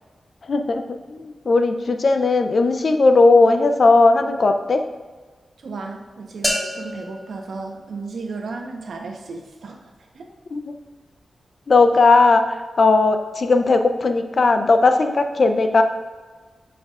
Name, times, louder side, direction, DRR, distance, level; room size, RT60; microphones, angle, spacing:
voice 1, 0.4-4.8 10.5-10.7 11.7-15.8, left 3 dB, 60° left, 7 dB, 0.6 m, -17 dB
voice 2, 5.6-9.9 10.1-10.3, right 4 dB, 80° right, 3 dB, 0.9 m, -34 dB
sound 1, 6.4-8.4, left 1 dB, 25° left, 1.2 m, -29 dB
9.5 x 5.8 x 2.4 m, 1.4 s
cardioid pair, 70°, 0 cm